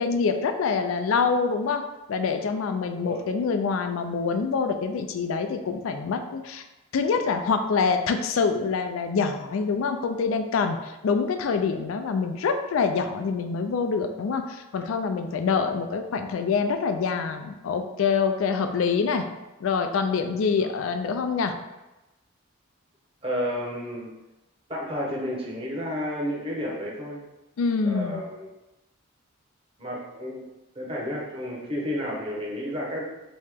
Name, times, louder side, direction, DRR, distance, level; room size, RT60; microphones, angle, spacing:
voice 1, 0.0-1.8 2.1-6.6 6.9-19.3 19.6-21.5 27.6-28.2, left 5 dB, 85° left, 7 dB, 0.3 m, -25 dB
voice 2, 23.2-24.1 24.7-27.2 27.8-28.5 29.8-30.4 30.7-33.0, equal, 30° right, -5 dB, 0.9 m, -31 dB
3.1 x 2.8 x 3.5 m, 1.0 s
head